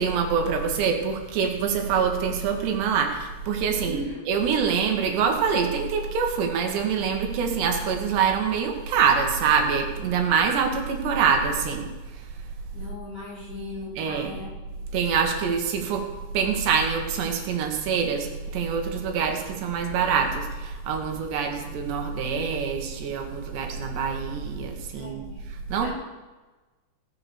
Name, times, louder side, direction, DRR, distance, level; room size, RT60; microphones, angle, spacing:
voice 1, 0.0-11.9 12.1-12.3 14.0-14.3 14.9-16.1 16.3-25.9, right 6 dB, 80° right, 3 dB, 3.5 m, -25 dB
voice 2, 3.8-4.3 12.7-14.5 24.9-25.4 25.8-25.9, left 2 dB, 25° left, -7 dB, 2.4 m, -37 dB
17.5 x 5.9 x 6.9 m, 1.2 s
omnidirectional pair, 4.9 m